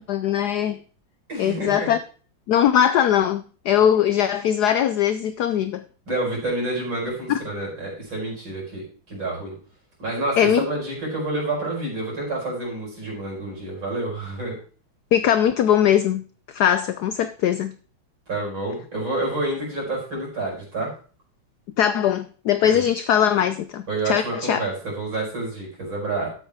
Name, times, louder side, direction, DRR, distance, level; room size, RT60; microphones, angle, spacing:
voice 1, 0.1-0.8 1.4-2.0 2.5-5.8 7.3-7.4 10.4-10.7 15.1-16.2 16.5-17.7 21.8-24.6, left 9 dB, 80° left, 0.8 m, -20 dB
voice 2, 1.3-1.9 6.1-9.5 10.0-14.6 18.3-20.9 22.6-22.8 23.9-26.3, right 2 dB, 65° right, 5.8 m, -28 dB
12.5 x 8.2 x 3.6 m
omnidirectional pair, 2.3 m